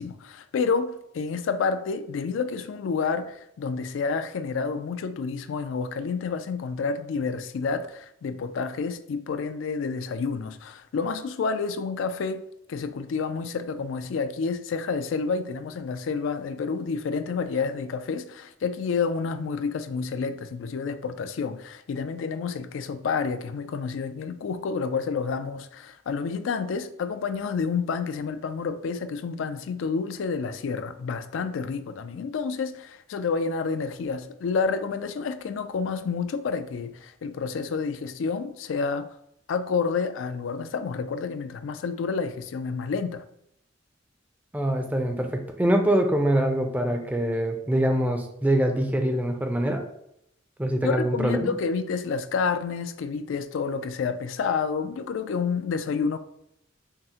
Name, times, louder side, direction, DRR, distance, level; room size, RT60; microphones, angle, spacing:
voice 1, 0.0-12.4 12.7-39.1 39.5-43.2 50.8-56.2, left 5 dB, 85° left, 0.3 m, -29 dB
voice 2, 44.5-49.8 50.6-51.5, right 1 dB, 10° right, 0.4 m, -24 dB
5.7 x 2.1 x 2.8 m
head